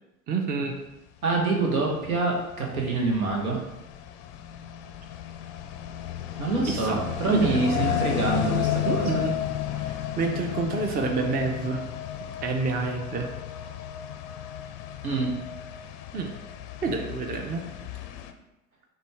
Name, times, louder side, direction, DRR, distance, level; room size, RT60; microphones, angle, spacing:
voice 1, 0.3-0.7 6.7-7.0 7.3-8.1 8.8-9.4 9.8-11.8 12.4-13.3 16.1-16.3 16.8-17.6, right 4 dB, 20° right, 3 dB, 0.5 m, -28 dB
voice 2, 1.2-3.6 6.4-9.2 15.0-15.3, right 3 dB, 80° right, -1 dB, 1.2 m, -26 dB
sound 1, 1.7-18.3, left 11 dB, 45° left, 0.5 m, -33 dB
6.5 x 2.3 x 3.4 m, 0.95 s
figure-of-eight pair, 80°, 42 cm